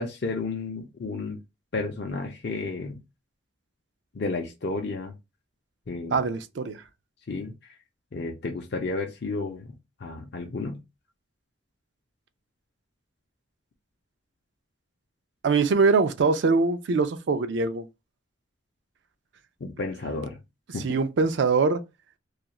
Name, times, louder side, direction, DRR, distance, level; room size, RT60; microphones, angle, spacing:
voice 1, 0.0-1.4 1.7-2.9 4.1-5.1 5.9-6.2 7.3-7.5 8.1-9.7 10.0-10.8 19.6-20.4 20.7-20.9, left 3 dB, 60° left, 0.5 m, -32 dB
voice 2, 6.1-6.8 15.4-17.8 20.8-21.8, right 4 dB, 70° right, 0.4 m, -23 dB
2.4 x 2.3 x 2.9 m
head